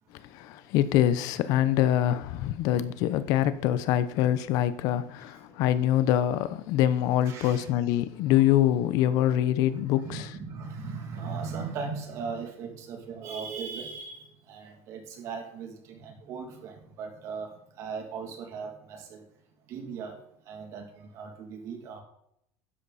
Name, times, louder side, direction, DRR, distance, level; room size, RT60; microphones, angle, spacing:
voice 1, 0.1-10.3, left 12 dB, 55° left, 0.9 m, -25 dB
voice 2, 7.2-7.7 10.0-19.2 19.7-22.0, right 5 dB, 40° right, 2.8 m, -38 dB
12.5 x 10.5 x 4.3 m
cardioid pair, 170°, 8 cm